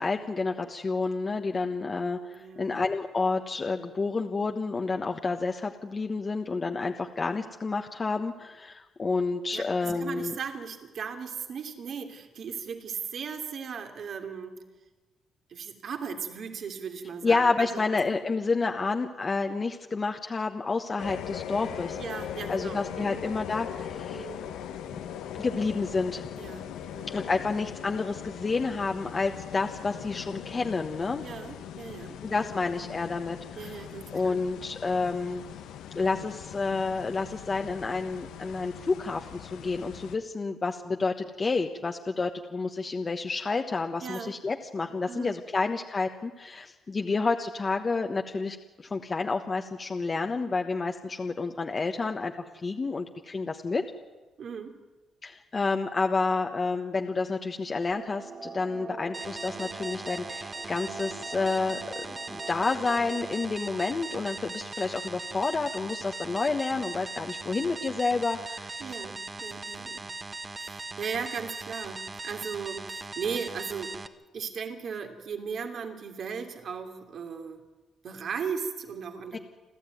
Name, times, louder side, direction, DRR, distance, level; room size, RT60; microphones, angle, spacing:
voice 1, 0.0-10.3 17.2-22.0 22.5-24.3 24.9-25.0 25.4-26.3 27.1-31.2 32.2-33.8 34.1-35.4 35.9-53.8 55.2-68.9 79.3-79.4, left 4 dB, 30° left, 4 dB, 1.2 m, -29 dB
voice 2, 2.3-2.7 9.5-14.6 15.5-18.0 22.0-23.2 24.1-24.4 26.4-27.2 31.2-32.6 33.6-34.4 44.0-44.3 45.1-45.4 54.4-54.8 68.8-70.1 70.6-73.9 74.3-77.6 78.0-79.4, right 6 dB, 60° right, 5 dB, 3.0 m, -37 dB
sound 1, 21.0-40.2, left 9 dB, 90° left, 1.2 m, -40 dB
sound 2, 57.9-63.5, right 4 dB, 40° right, 2.5 m, -43 dB
sound 3, 59.1-74.1, right 3 dB, 25° right, 1.3 m, -39 dB
29.0 x 13.0 x 9.3 m, 1.2 s
cardioid pair, 90°, 0 cm